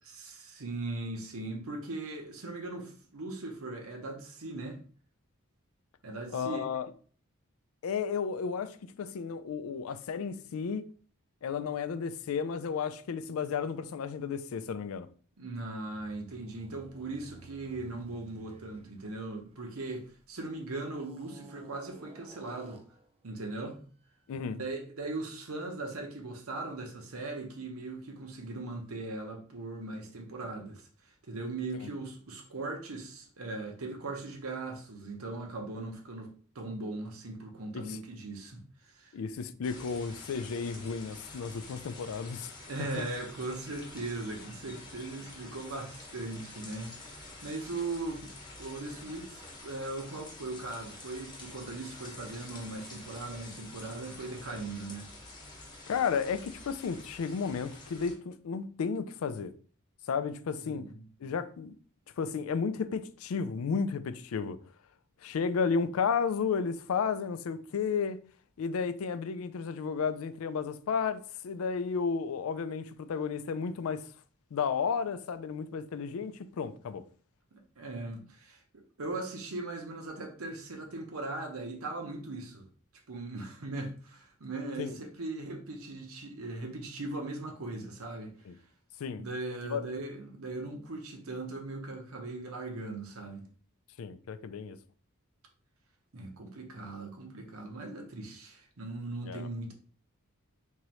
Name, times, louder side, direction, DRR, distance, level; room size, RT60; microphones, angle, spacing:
voice 1, 0.2-4.8 6.0-6.6 15.4-22.8 23.2-23.8 24.5-30.8 31.3-36.3 36.5-39.2 42.7-48.3 48.6-55.1 60.6-61.0 77.8-82.7 83.1-88.3 89.2-93.5 96.1-99.7, right 2 dB, 75° right, 0.9 m, -39 dB
voice 2, 6.3-6.9 7.8-10.8 11.4-15.1 24.3-24.6 37.7-38.0 39.1-42.5 43.0-43.1 55.9-59.5 60.1-60.8 61.2-61.7 62.2-64.6 65.2-68.2 68.6-74.1 74.5-77.0 84.8-85.0 88.5-88.6 89.0-89.2 89.7-89.8 94.0-94.8 99.2-99.5, left 6 dB, 75° left, 0.4 m, -33 dB
sound 1, 15.4-20.3 20.9-23.1, right 3 dB, 25° right, 0.4 m, -53 dB
sound 2, 39.6-58.1, left 2 dB, 20° left, 1.0 m, -48 dB
3.6 x 3.1 x 3.0 m
head